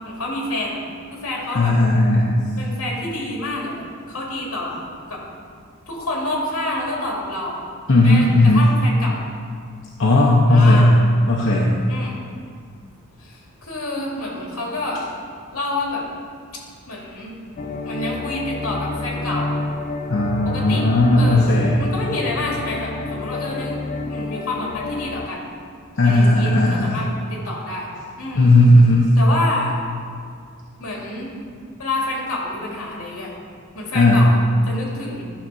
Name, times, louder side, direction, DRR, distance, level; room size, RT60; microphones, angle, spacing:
voice 1, 0.0-0.8 1.1-1.8 2.6-5.2 5.9-7.6 8.0-9.2 10.5-11.0 11.9-12.2 13.2-15.0 15.5-16.0 16.9-17.3 17.8-19.6 20.4-20.9 21.2-21.5 21.8-23.8 24.1-25.4 26.0-27.9 28.2-28.5 29.2-29.7 30.8-31.3 31.8-33.3 33.7-34.4 34.7-35.2, left 2 dB, 90° left, -2 dB, 2.4 m, -28 dB
voice 2, 1.5-2.5 7.9-8.7 10.0-10.9 11.3-11.7 20.1-21.8 26.0-27.0 28.3-29.1 33.9-34.3, left 1 dB, 60° left, -3 dB, 0.9 m, -15 dB
sound 1, 17.6-25.3, left 3 dB, 40° left, 0.4 m, -29 dB
11.5 x 3.9 x 6.2 m, 2.1 s
head